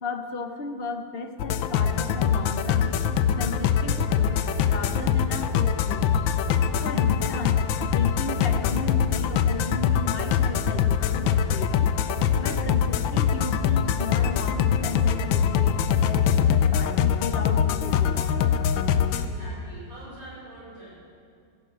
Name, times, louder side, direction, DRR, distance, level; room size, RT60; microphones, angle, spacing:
voice 1, 0.0-2.9 3.4-6.0 6.8-11.9 12.4-18.4, left 3 dB, 50° left, 6 dB, 0.7 m, -35 dB
sound 1, 1.4-19.3, left 8 dB, 85° left, 1.4 m, -23 dB
voice 2, 19.2-21.0, right 1 dB, 75° right, -6 dB, 6.2 m, -44 dB
16.0 x 10.5 x 8.0 m, 2.3 s
omnidirectional pair, 2.0 m